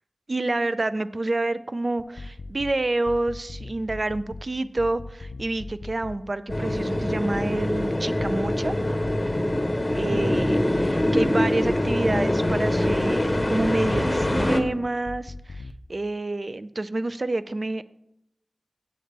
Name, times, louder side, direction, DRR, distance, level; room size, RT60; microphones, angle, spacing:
voice 1, 0.3-8.7 9.9-15.6 15.9-17.8, right 2 dB, 50° right, 13 dB, 0.4 m, -28 dB
sound 1, 2.0-2.7 3.0-4.4 4.8-6.2 6.5-7.9 8.2-9.6 9.9-11.3 11.6-13.0 13.3-14.7 15.0-15.7, left 3 dB, 85° left, 0.3 m, -38 dB
sound 2, 6.5-14.6, left 1 dB, 30° left, 0.9 m, -24 dB
8.6 x 7.9 x 3.3 m, 0.79 s
wide cardioid pair, 65°, 0 cm